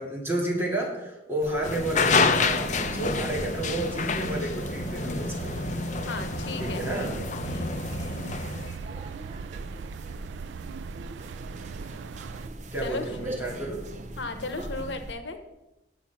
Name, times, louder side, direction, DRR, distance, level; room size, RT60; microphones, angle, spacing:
voice 1, 0.0-5.6 6.6-7.2 12.7-13.9, right 1 dB, 15° right, -3 dB, 2.5 m, -31 dB
sound 1, 1.4-15.1, right 1 dB, 40° right, 0.7 m, -42 dB
sound 2, 1.6-8.8, left 4 dB, 40° left, 0.7 m, -28 dB
sound 3, 2.8-12.5, right 6 dB, 80° right, 0.3 m, -40 dB
voice 2, 6.1-6.8 7.4-7.7 12.8-13.3 14.2-15.4, left 3 dB, 85° left, 8 dB, 1.0 m, -35 dB
8.9 x 7.1 x 5.7 m, 0.94 s
head